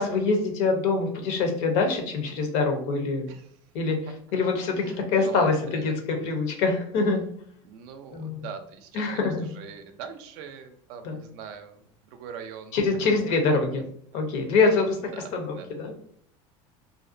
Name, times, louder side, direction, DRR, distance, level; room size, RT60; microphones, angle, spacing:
voice 1, 0.0-3.3 3.7-4.0 4.3-7.2 8.1-8.5 8.9-9.5 11.0-11.2 12.7-13.8 14.1-15.0 15.3-15.9, left 4 dB, 70° left, 3 dB, 0.7 m, -24 dB
voice 2, 4.7-6.0 7.0-7.2 7.6-9.1 9.5-12.8 13.7-13.8 14.7-14.8 15.1-15.7, right 7 dB, 70° right, 8 dB, 0.4 m, -42 dB
2.6 x 2.0 x 2.5 m, 0.62 s
supercardioid pair, 90°, 17 cm